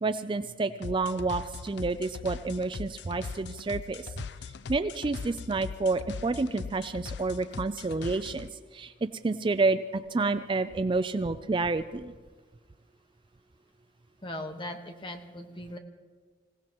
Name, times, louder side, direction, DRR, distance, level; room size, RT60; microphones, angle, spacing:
voice 1, 0.0-4.1 4.7-8.5 8.7-8.9 9.2-12.1, right 3 dB, 25° right, 11 dB, 0.4 m, -29 dB
sound 1, 0.8-8.5, left 5 dB, 65° left, 0.4 m, -40 dB
voice 2, 14.2-15.8, left 1 dB, 30° left, 5 dB, 1.3 m, -39 dB
26.0 x 17.0 x 3.0 m, 1.4 s
head